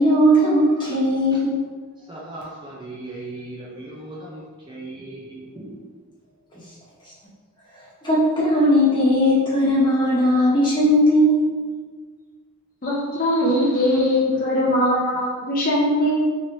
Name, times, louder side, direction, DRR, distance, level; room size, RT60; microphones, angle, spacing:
voice 1, 0.0-1.6 8.0-11.4, equal, 20° left, -8 dB, 1.0 m, -18 dB
voice 2, 2.1-4.4 4.7-5.8, right 2 dB, 20° right, -5 dB, 0.4 m, -37 dB
voice 3, 12.8-16.1, left 1 dB, 40° left, -5 dB, 0.5 m, -21 dB
3.1 x 3.0 x 2.6 m, 1.5 s
head